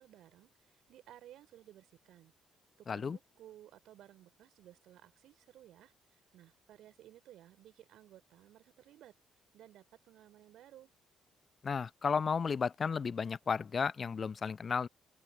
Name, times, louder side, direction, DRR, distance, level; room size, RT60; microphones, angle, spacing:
voice 1, 0.0-2.3 2.9-9.1 9.5-10.9, right 12 dB, 65° right, 3.6 m, -57 dB
voice 2, 2.9-3.2 11.6-14.9, left 5 dB, 40° left, 0.6 m, -33 dB
figure-of-eight pair, 40°, 0 cm